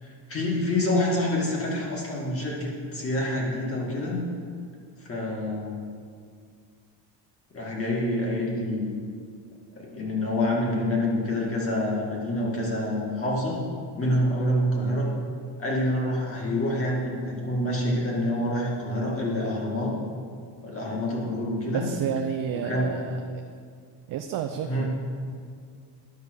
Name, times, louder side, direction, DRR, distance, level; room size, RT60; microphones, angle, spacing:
voice 1, 0.0-4.2 5.0-5.8 7.5-9.0 9.7-13.6 14.0-15.1 15.6-19.9 20.6-21.8 22.6-22.9 24.7-24.9, left 1 dB, 30° left, -3 dB, 2.1 m, -27 dB
voice 2, 21.7-23.4 24.1-24.9, right 8 dB, 45° right, 6 dB, 0.5 m, -30 dB
10.5 x 5.3 x 6.3 m, 2.1 s
cardioid pair, 150°, 46 cm